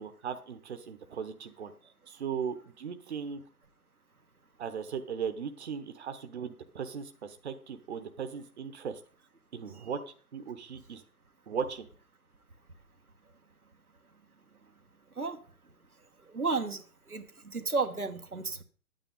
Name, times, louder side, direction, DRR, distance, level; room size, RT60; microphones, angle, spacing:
voice 1, 0.0-3.4 4.6-9.0 9.5-10.0 10.3-11.0 11.5-11.8, right 7 dB, 50° right, 9 dB, 1.1 m, -38 dB
voice 2, 16.3-18.6, right 4 dB, 90° right, 6 dB, 1.4 m, -33 dB
10.5 x 9.1 x 5.3 m, 0.42 s
figure-of-eight pair, 135°, 43 cm